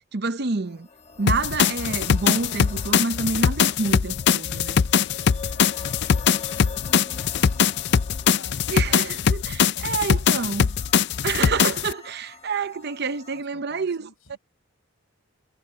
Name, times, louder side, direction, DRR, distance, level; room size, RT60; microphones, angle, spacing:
voice 1, 0.1-0.9 1.2-4.8 8.7-10.7 11.2-14.4, right 4 dB, 50° right, 0.7 m, -28 dB
sound 1, 0.7-13.4, left 5 dB, 30° left, 1.2 m, -44 dB
sound 2, 1.3-11.9, left 7 dB, 50° left, 0.4 m, -22 dB
voice 2, 4.9-6.9 7.4-8.8 9.3-10.7 13.3-14.4, left 3 dB, 70° left, 7.5 m, -50 dB
head